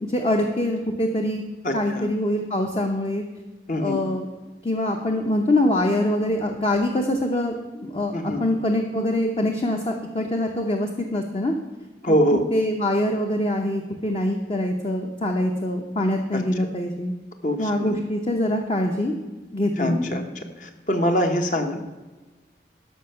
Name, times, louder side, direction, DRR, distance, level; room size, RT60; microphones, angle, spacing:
voice 1, 0.1-1.4 1.7-3.2 3.8-4.3 4.6-11.5 12.1-12.2 12.5-17.1 17.6-19.1 19.5-20.2, left 1 dB, 30° left, 3 dB, 0.7 m, -24 dB
voice 2, 1.6-2.1 3.7-4.0 8.1-8.4 12.0-12.4 16.3-16.4 17.4-17.9 19.8-20.3 20.6-21.8, equal, 45° left, 5 dB, 1.1 m, -23 dB
13.0 x 5.7 x 5.7 m, 1.2 s
head